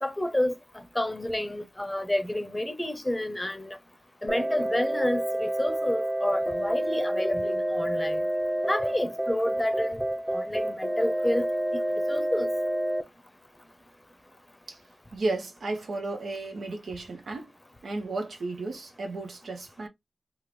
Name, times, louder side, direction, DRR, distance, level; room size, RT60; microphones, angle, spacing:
voice 1, 0.0-3.8 4.2-8.2 8.7-10.0 10.3-11.5 11.7-11.8 12.1-12.5, left 1 dB, 15° left, 0.7 m, -29 dB
sound 1, 4.3-13.0, right 1 dB, 10° right, 0.9 m, -29 dB
voice 2, 15.1-17.5 17.8-19.9, right 2 dB, 85° right, 0.8 m, -33 dB
3.6 x 2.1 x 3.2 m
cardioid pair, 55°, 0 cm